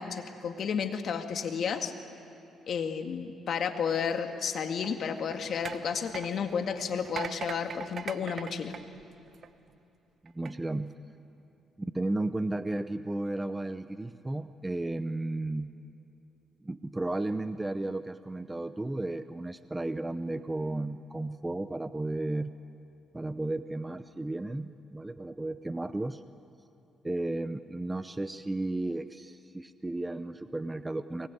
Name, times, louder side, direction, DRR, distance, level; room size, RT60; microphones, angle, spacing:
voice 1, 0.0-1.9 2.7-8.7, left 6 dB, 60° left, 6 dB, 1.9 m, -32 dB
sound 1, 4.8-9.7 10.3-10.5, right 6 dB, 50° right, 1.0 m, -41 dB
voice 2, 10.2-10.9 11.8-15.7 16.6-22.5 23.1-26.2 27.0-31.3, right 2 dB, 15° right, 11 dB, 0.7 m, -34 dB
23.0 x 21.5 x 9.4 m, 2.8 s
cardioid pair, 90°, 0 cm